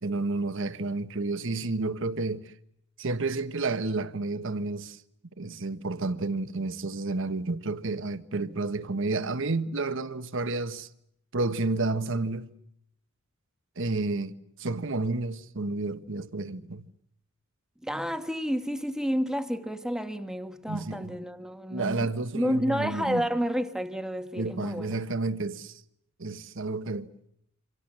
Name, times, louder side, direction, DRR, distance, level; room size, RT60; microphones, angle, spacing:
voice 1, 0.0-2.5 3.0-5.0 5.4-10.9 11.3-12.5 13.8-16.9 20.7-21.2 21.7-23.3 24.4-25.8 26.2-27.1, right 3 dB, 65° right, 1.3 m, -31 dB
voice 2, 17.8-25.0, equal, 5° right, 1.4 m, -30 dB
28.0 x 25.5 x 7.4 m
head